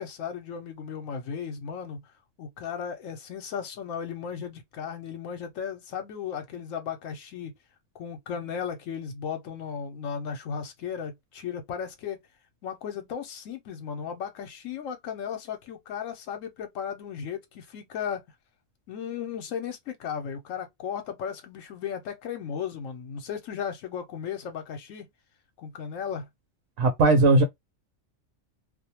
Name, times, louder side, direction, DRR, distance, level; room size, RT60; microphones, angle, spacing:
voice 1, 0.0-2.0 2.4-7.5 8.0-12.2 12.6-18.2 18.9-25.1 25.6-26.3, left 7 dB, 80° left, 1.0 m, -35 dB
voice 2, 26.8-27.4, right 2 dB, 75° right, 1.0 m, -18 dB
2.4 x 2.1 x 2.8 m
omnidirectional pair, 1.3 m